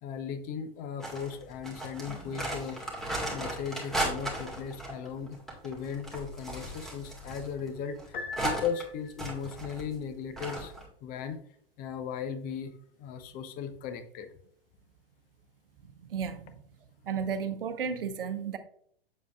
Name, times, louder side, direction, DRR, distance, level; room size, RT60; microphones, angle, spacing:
voice 1, 0.0-2.8 3.3-10.7 11.0-11.4 11.8-12.7 13.0-14.3, left 7 dB, 30° left, 9 dB, 0.8 m, -37 dB
sound 1, 1.0-8.8 9.1-10.1 10.4-10.9, right 1 dB, ahead, 1.8 m, -36 dB
Piano, 8.1-9.4, left 4 dB, 60° left, 1.0 m, -41 dB
voice 2, 16.1-16.5 17.1-18.6, right 6 dB, 65° right, 11 dB, 0.9 m, -33 dB
7.3 x 7.1 x 2.4 m, 0.64 s
figure-of-eight pair, 100°, 30 cm